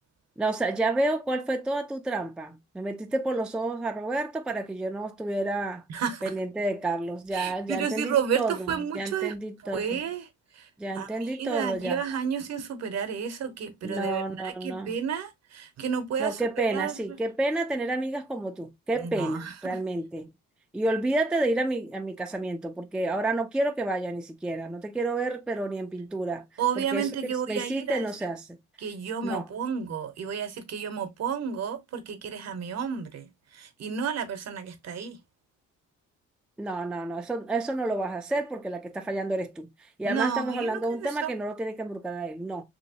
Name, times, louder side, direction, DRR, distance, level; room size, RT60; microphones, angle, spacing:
voice 1, 0.4-5.8 6.2-10.0 10.8-12.0 13.8-15.0 16.2-20.3 20.7-26.4 26.8-27.1 27.5-28.5 29.2-29.4 36.6-42.6, right 2 dB, 5° right, 0.4 m, -30 dB
voice 2, 5.9-6.2 7.3-9.3 9.7-10.3 10.5-10.7 11.0-16.4 16.7-17.0 19.0-19.8 26.6-28.1 28.8-35.2 40.0-41.3, right 7 dB, 60° right, 0.8 m, -31 dB
3.0 x 2.8 x 2.7 m
cardioid pair, 90°, 30 cm